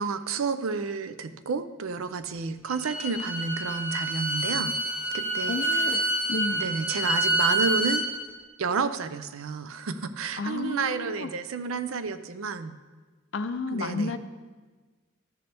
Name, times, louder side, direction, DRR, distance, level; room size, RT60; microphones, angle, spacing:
voice 1, 0.0-4.7 5.1-6.1 6.5-8.1 8.6-12.7 13.7-14.2, right 5 dB, 80° right, 11 dB, 0.5 m, -31 dB
Bowed string instrument, 2.7-8.0, right 1 dB, 5° right, 1.0 m, -27 dB
voice 2, 5.5-6.0 6.3-6.7 10.4-11.3 13.3-14.2, left 3 dB, 60° left, 10 dB, 0.5 m, -31 dB
13.5 x 6.8 x 3.4 m, 1.3 s
head